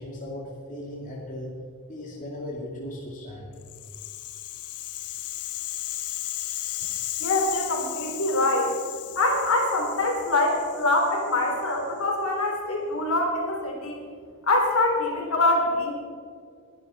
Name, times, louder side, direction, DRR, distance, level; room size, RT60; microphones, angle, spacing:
voice 1, 0.0-1.5 1.9-3.5, left 1 dB, 35° left, -4 dB, 2.4 m, -37 dB
Rattle (instrument), 3.6-11.8, left 14 dB, 80° left, 0.9 m, -35 dB
voice 2, 7.2-8.7 9.2-14.0 14.5-15.9, left 2 dB, 65° left, 0 dB, 3.7 m, -24 dB
21.0 x 11.5 x 4.3 m, 2.1 s
head